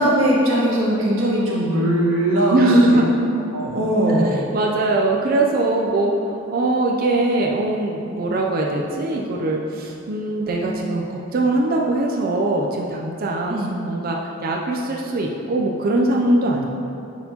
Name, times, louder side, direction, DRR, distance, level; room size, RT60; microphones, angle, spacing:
voice 1, 0.0-3.0 3.5-4.3 13.5-13.8, right 1 dB, 75° right, -6 dB, 1.5 m, -20 dB
voice 2, 2.5-3.2 4.1-6.2 6.5-16.7, right 2 dB, 45° right, -1 dB, 0.5 m, -21 dB
9.2 x 4.3 x 2.9 m, 2.7 s
head